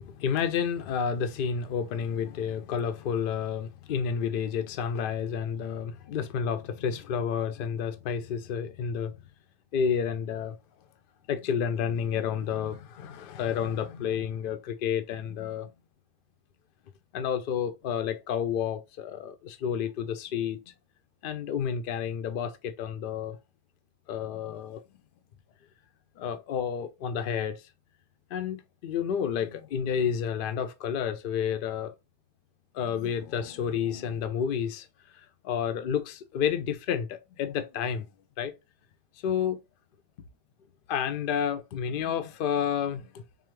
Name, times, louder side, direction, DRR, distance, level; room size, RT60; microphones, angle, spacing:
voice 1, 0.0-9.2 9.7-10.6 11.3-15.7 17.1-20.6 21.2-23.4 24.1-24.8 26.2-27.6 28.3-31.9 32.7-34.9 35.4-38.1 38.4-38.5 39.2-39.6 40.9-43.1, left 7 dB, 65° left, 0.7 m, -30 dB
3.7 x 2.7 x 3.0 m
omnidirectional pair, 1.1 m